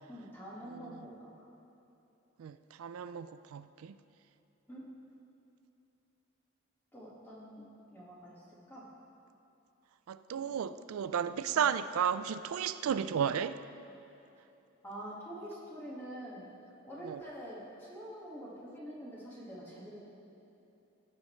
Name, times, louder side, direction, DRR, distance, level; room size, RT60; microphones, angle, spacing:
voice 1, 0.1-1.4 4.7-4.8 6.9-7.6 7.9-8.9 11.5-11.7 14.8-16.4 16.8-20.0, equal, 10° left, -7 dB, 1.6 m, -46 dB
voice 2, 2.4-4.0 10.1-13.6 17.1-17.2, right 8 dB, 90° right, 13 dB, 0.3 m, -33 dB
15.0 x 6.4 x 3.1 m, 2.9 s
head